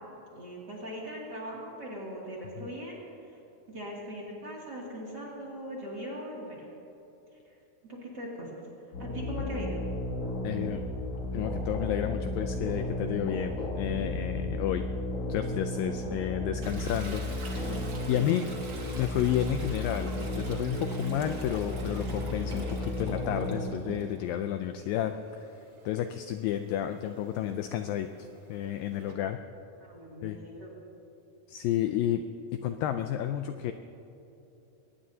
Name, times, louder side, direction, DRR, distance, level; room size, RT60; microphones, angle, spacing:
voice 1, 0.3-3.4 3.7-6.7 7.4-7.6 7.8-8.7 9.0-9.8 17.6-17.8 22.0-22.3 29.8-30.7, equal, 30° right, -5 dB, 2.6 m, -40 dB
sound 1, 8.9-23.7, left 1 dB, 45° left, 3.1 m, -34 dB
voice 2, 10.4-10.8 11.3-14.9 15.3-17.2 17.5-17.7 18.1-18.5 18.9-29.4 30.2-30.4 31.5-32.2 32.5-33.7, left 11 dB, 80° left, 8 dB, 2.1 m, -31 dB
Toilet flush, 16.6-24.4 24.8-29.1, right 2 dB, 55° right, 1.1 m, -47 dB
22.5 x 19.0 x 2.8 m, 3.0 s
omnidirectional pair, 4.5 m